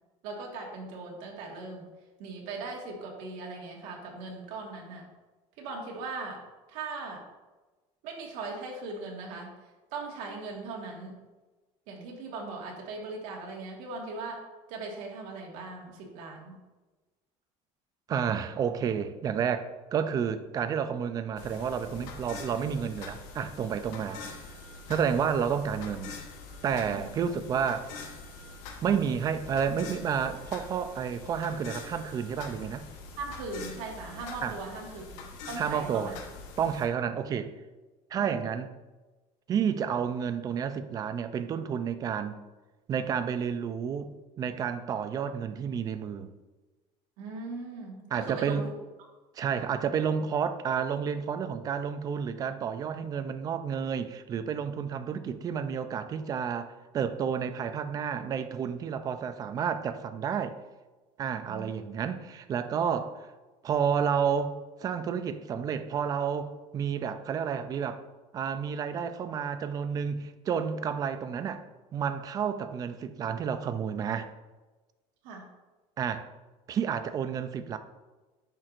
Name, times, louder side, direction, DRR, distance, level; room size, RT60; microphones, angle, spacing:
voice 1, 0.2-1.9 2.2-5.0 5.6-7.2 8.0-9.5 9.9-11.2 11.9-14.4 14.7-16.5 24.1-24.2 24.9-25.0 26.9-27.1 33.2-36.2 38.1-38.3 47.2-48.7 61.4-61.8 75.2-75.4, right 3 dB, 80° right, 1.6 m, -39 dB
voice 2, 18.1-24.2 24.9-26.2 26.6-27.9 28.8-32.9 34.4-34.5 35.6-36.1 36.6-37.5 38.1-38.7 39.5-42.4 42.9-46.3 48.1-48.6 49.4-60.6 61.2-63.3 63.6-68.0 68.3-71.6 71.9-74.3 76.0-76.3 76.7-77.8, right 7 dB, 30° right, 0.4 m, -30 dB
sound 1, 21.4-36.9, left 4 dB, 85° left, 1.1 m, -44 dB
10.0 x 4.6 x 2.5 m
cardioid pair, 165°, 13 cm